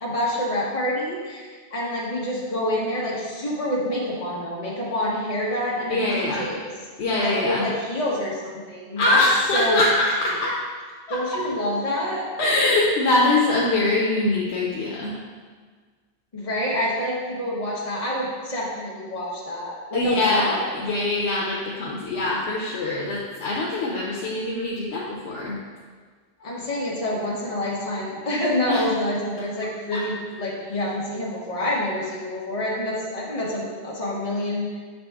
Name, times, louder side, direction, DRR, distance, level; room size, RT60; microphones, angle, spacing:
voice 1, 0.0-1.5 1.7-6.6 7.2-9.2 9.5-9.8 11.1-12.3 16.3-20.7 26.4-34.8, left 1 dB, 35° left, -6 dB, 1.2 m, -27 dB
voice 2, 5.9-6.5 7.0-7.7 9.0-10.6 11.1-11.2 12.4-15.2 19.9-25.6 28.7-28.8 29.9-30.0, left 2 dB, 85° left, -4 dB, 1.0 m, -23 dB
6.7 x 4.2 x 3.5 m, 1.5 s
omnidirectional pair, 1.1 m